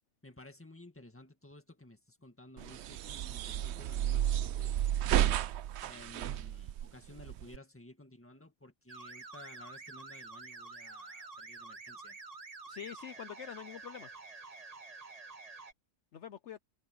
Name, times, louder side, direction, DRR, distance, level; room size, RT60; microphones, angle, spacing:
voice 1, 0.2-4.9 5.8-12.2, left 1 dB, 10° left, 1.8 m, -55 dB
sound 1, 2.6-7.6, right 11 dB, 65° right, 0.7 m, -32 dB
sound 2, 8.9-15.7, right 3 dB, 30° right, 1.3 m, -49 dB
voice 2, 12.7-14.1 16.1-16.6, left 9 dB, 60° left, 1.0 m, -45 dB
omnidirectional pair, 1.4 m